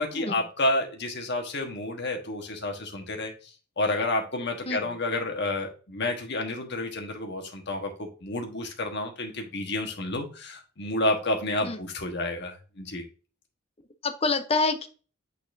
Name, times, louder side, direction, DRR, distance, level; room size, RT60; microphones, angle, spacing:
voice 1, 0.0-3.3 3.8-13.0, left 2 dB, 60° left, 3 dB, 1.3 m, -30 dB
voice 2, 14.0-14.9, left 3 dB, 30° left, 7 dB, 0.7 m, -27 dB
8.7 x 4.1 x 2.6 m, 0.37 s
head